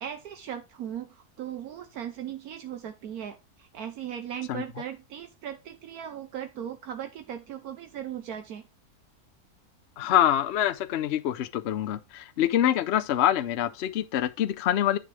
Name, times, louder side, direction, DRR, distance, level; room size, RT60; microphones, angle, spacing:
voice 1, 0.0-8.6, right 9 dB, 75° right, 1.2 m, -38 dB
voice 2, 10.0-15.0, left 11 dB, 65° left, 0.6 m, -25 dB
10.0 x 3.7 x 4.8 m
omnidirectional pair, 1.6 m